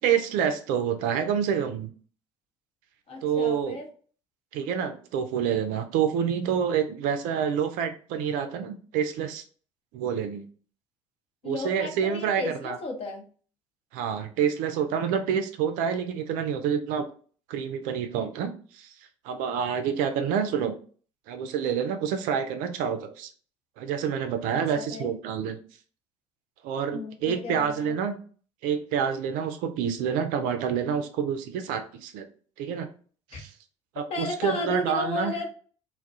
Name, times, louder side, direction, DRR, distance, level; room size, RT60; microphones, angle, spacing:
voice 1, 0.0-1.9 3.2-3.8 4.5-9.4 9.9-10.5 11.4-12.8 13.9-17.0 17.5-18.9 19.2-20.7 21.3-23.3 23.8-25.6 26.6-28.2 28.6-32.3 32.6-32.9 33.3-33.5 34.0-35.3, right 7 dB, 60° right, 8 dB, 0.4 m, -27 dB
voice 2, 3.1-3.9 11.4-13.3 24.5-25.1 26.9-28.0 33.3-33.4 34.1-35.5, left 3 dB, 40° left, 2 dB, 0.8 m, -34 dB
2.3 x 2.1 x 2.6 m, 0.42 s
hypercardioid pair, 60°, 16 cm